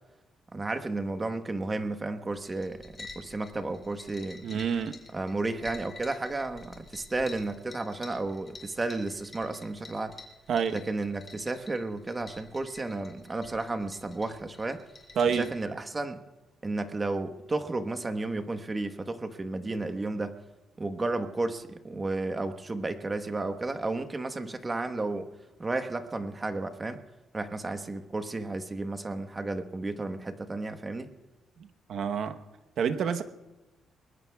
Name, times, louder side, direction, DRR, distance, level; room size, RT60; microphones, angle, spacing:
voice 1, 0.5-4.5 5.1-10.1 10.7-14.8 15.3-16.2 16.6-20.3 20.8-25.3 25.6-27.0 27.3-31.1, right 2 dB, 25° right, 1.2 m, -33 dB
sound 1, 2.3-15.6, left 3 dB, 25° left, 3.0 m, -49 dB
voice 2, 4.4-5.0 10.5-10.8 15.2-15.5 31.9-32.4 32.8-33.2, right 7 dB, 65° right, 1.0 m, -27 dB
28.5 x 21.0 x 2.3 m
cardioid pair, 85°, 0 cm